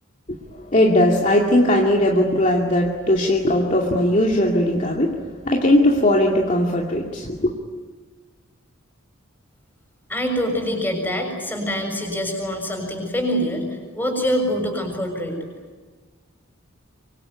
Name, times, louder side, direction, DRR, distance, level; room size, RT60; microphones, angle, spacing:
voice 1, 0.7-5.2 5.4-7.5, left 1 dB, 35° left, -1 dB, 2.5 m, -18 dB
voice 2, 10.1-15.4, equal, 10° left, 3 dB, 6.8 m, -25 dB
25.5 x 24.5 x 9.6 m, 1.4 s
head